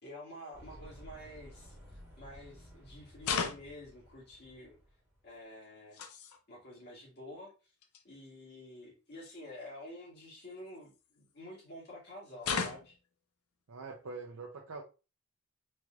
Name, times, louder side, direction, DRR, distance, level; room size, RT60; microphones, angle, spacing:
voice 1, 0.0-4.8 5.2-6.0 6.5-7.5 8.0-13.0, left 1 dB, 50° left, -4 dB, 2.1 m, -49 dB
sound 1, 0.5-5.3, equal, 10° right, 1.5 m, -54 dB
sound 2, 1.5-1.7 3.2-3.8 5.6-6.4 7.5-7.6 7.8-8.0 9.2-9.3 10.3-11.3 12.4-13.1, left 6 dB, 85° left, 0.5 m, -36 dB
voice 2, 13.7-14.8, right 4 dB, 75° right, 0 dB, 0.7 m, -44 dB
4.2 x 3.3 x 2.4 m, 0.31 s
head